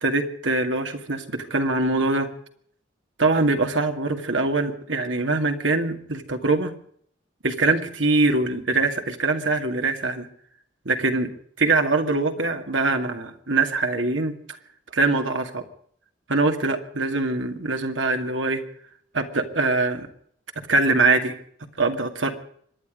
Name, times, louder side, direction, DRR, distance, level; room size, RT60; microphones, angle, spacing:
voice 1, 0.0-2.3 3.2-6.7 7.4-10.3 10.9-11.3 11.6-14.6 14.9-15.6 16.3-18.6 19.1-20.1 20.7-21.4 21.8-22.3, right 3 dB, 80° right, 6 dB, 2.2 m, -23 dB
25.5 x 10.5 x 5.1 m, 0.62 s
head